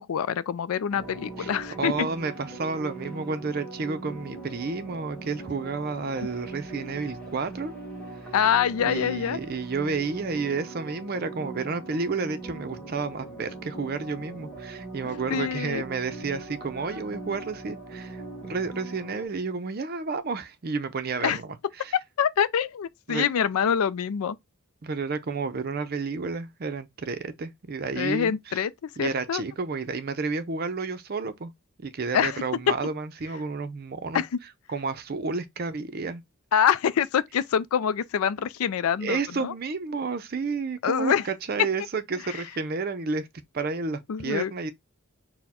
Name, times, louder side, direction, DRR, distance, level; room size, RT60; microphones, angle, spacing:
voice 1, 0.0-2.1 8.3-9.4 15.3-15.8 21.2-21.4 21.9-24.4 28.0-29.4 32.1-32.4 34.1-34.3 36.5-39.5 40.8-41.2 42.3-42.4 44.1-44.5, left 8 dB, 80° left, 0.4 m, -25 dB
sound 1, 0.9-19.3, right 2 dB, 5° left, 1.5 m, -40 dB
voice 2, 1.4-7.7 8.8-21.9 23.1-23.2 24.8-28.6 29.0-31.5 31.8-34.2 34.7-36.2 39.0-43.3 43.5-44.7, right 4 dB, 45° right, 0.5 m, -31 dB
4.3 x 2.1 x 4.2 m
head